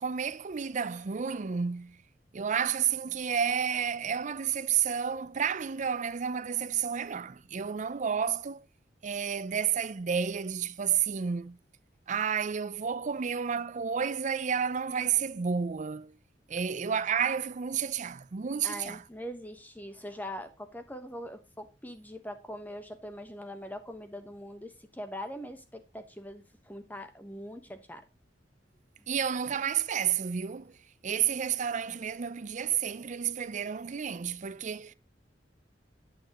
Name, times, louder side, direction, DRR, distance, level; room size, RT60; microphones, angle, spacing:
voice 1, 0.0-2.0 2.3-8.6 9.0-11.6 12.1-16.1 16.5-19.0 29.1-30.8 31.0-34.9, right 7 dB, 45° right, 0.5 m, -31 dB
voice 2, 18.6-28.0, equal, 10° left, 1.2 m, -42 dB
8.7 x 8.7 x 3.0 m
head